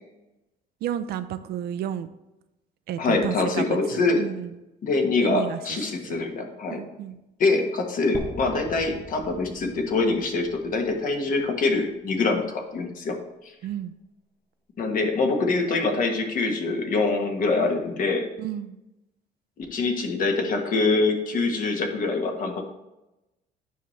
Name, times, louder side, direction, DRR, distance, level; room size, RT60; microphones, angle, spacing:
voice 1, 0.8-2.1 2.9-4.6 5.2-5.6 6.0-6.2 6.7-7.2 13.6-13.9 18.4-18.8, right 10 dB, 65° right, 12 dB, 0.5 m, -32 dB
voice 2, 3.0-4.2 4.8-6.8 7.4-13.2 14.8-18.3 19.6-22.6, left 3 dB, 55° left, 4 dB, 1.3 m, -24 dB
sound 1, 8.1-12.2, left 1 dB, 15° left, 0.8 m, -42 dB
9.3 x 5.6 x 3.2 m, 0.97 s
cardioid pair, 110°, 17 cm